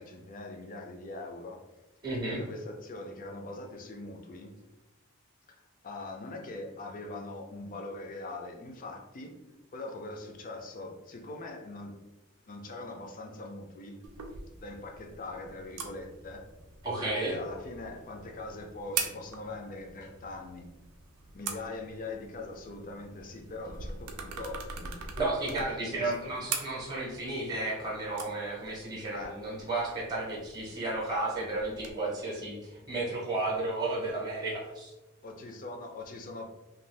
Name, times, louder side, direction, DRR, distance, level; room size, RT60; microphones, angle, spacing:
voice 1, 0.0-1.6 2.3-4.5 5.5-9.4 9.7-12.0 12.5-14.0 14.5-16.5 17.0-20.7 21.3-26.3 29.1-29.4 35.2-36.5, left 2 dB, 35° left, 3 dB, 0.4 m, -42 dB
voice 2, 2.0-2.4 16.8-17.4 25.2-34.9, right 2 dB, 20° right, -4 dB, 0.7 m, -33 dB
sound 1, 14.0-31.9, right 5 dB, 90° right, 0.5 m, -43 dB
2.6 x 2.3 x 3.2 m, 1.0 s
head